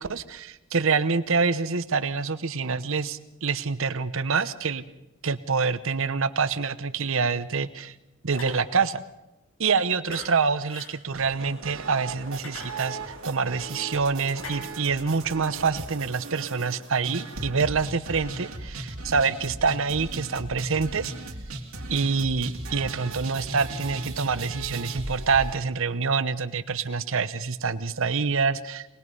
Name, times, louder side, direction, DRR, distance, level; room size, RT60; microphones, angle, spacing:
voice 1, 0.0-4.8 5.2-7.9 8.2-9.0 9.6-21.1 21.9-29.0, right 5 dB, 70° right, 12 dB, 1.0 m, -26 dB
sound 1, 8.3-8.6 10.0-10.3 10.7-10.9 12.2-13.2 14.3-14.6, left 2 dB, 90° left, 5.9 m, -40 dB
sound 2, 11.1-25.5, right 3 dB, 85° right, 2.5 m, -37 dB
24.5 x 19.5 x 5.5 m, 1.0 s
head